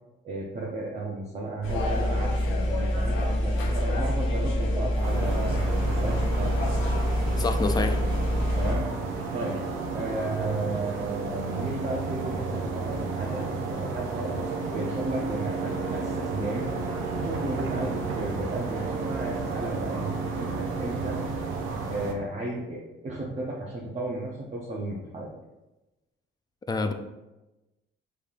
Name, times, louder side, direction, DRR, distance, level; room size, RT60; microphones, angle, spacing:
voice 1, 0.2-6.6 8.5-8.9 9.3-9.6 9.9-16.7 17.1-21.2 21.8-25.4, right 2 dB, 35° right, -4 dB, 0.7 m, -34 dB
sound 1, 1.6-8.8, left 1 dB, 85° left, 0.8 m, -26 dB
sound 2, 5.0-22.1, right 4 dB, 85° right, 0.6 m, -32 dB
voice 2, 7.4-8.0 26.7-26.9, left 3 dB, 20° left, 7 dB, 0.4 m, -27 dB
5.3 x 3.3 x 2.4 m, 1.0 s
cardioid pair, 90°, 20 cm